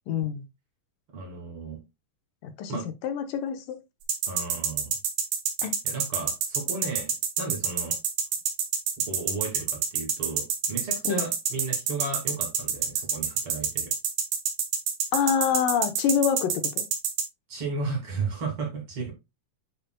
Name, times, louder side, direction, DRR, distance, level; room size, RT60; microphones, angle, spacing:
voice 1, 0.1-0.4 2.4-2.8 3.0-3.8 5.6-5.7 11.1-11.2 15.1-16.8, left 8 dB, 75° left, 2.5 m, -26 dB
voice 2, 1.1-1.8 2.7-2.8 4.3-4.9 5.8-7.1 7.4-8.0 9.1-13.9 17.5-19.1, right 4 dB, 45° right, 2.7 m, -34 dB
sound 1, 4.1-17.2, right 7 dB, 75° right, 2.8 m, -26 dB
9.0 x 5.2 x 2.2 m
omnidirectional pair, 3.9 m